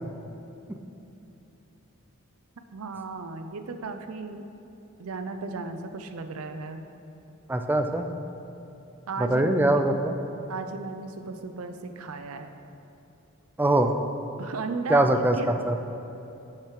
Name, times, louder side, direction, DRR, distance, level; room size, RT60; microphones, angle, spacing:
voice 1, 2.7-4.5 5.0-6.8 9.1-9.4 9.7-9.9 10.5-12.5 14.4-15.7, right 4 dB, 80° right, 7 dB, 0.5 m, -35 dB
voice 2, 7.5-8.1 9.3-10.1 13.6-13.9 14.9-15.3 15.7-15.8, right 1 dB, 10° right, 6 dB, 0.3 m, -22 dB
6.7 x 6.6 x 4.7 m, 3.0 s
head